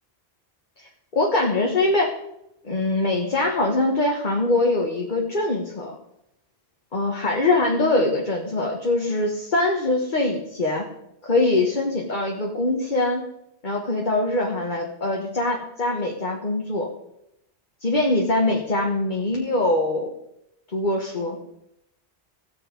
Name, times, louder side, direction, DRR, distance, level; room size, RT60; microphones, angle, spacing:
voice 1, 1.1-2.2 2.6-5.9 6.9-10.9 11.2-13.2 13.6-16.9 17.8-20.1 20.7-21.4, left 2 dB, 45° left, 0 dB, 1.5 m, -23 dB
16.5 x 7.2 x 5.2 m, 0.80 s
omnidirectional pair, 1.1 m